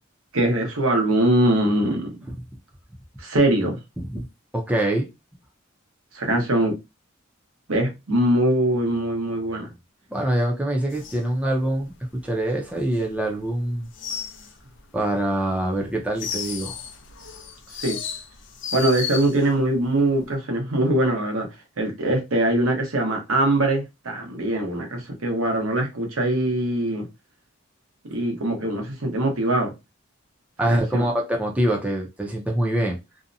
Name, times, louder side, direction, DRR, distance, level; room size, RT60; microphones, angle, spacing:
voice 1, 0.3-2.2 3.2-3.8 6.1-6.8 7.7-9.7 17.8-18.0 18.7-21.5 21.8-27.1 28.0-29.7 30.6-31.1, right 1 dB, 85° right, 0.9 m, -22 dB
voice 2, 4.5-5.1 10.1-11.9 12.2-13.9 14.9-16.7 30.6-33.0, right 1 dB, 5° right, 0.5 m, -24 dB
sound 1, 10.9-13.5 13.7-15.0 15.4-19.7 19.9-20.3, left 6 dB, 60° left, 0.5 m, -34 dB
2.7 x 2.1 x 2.6 m
head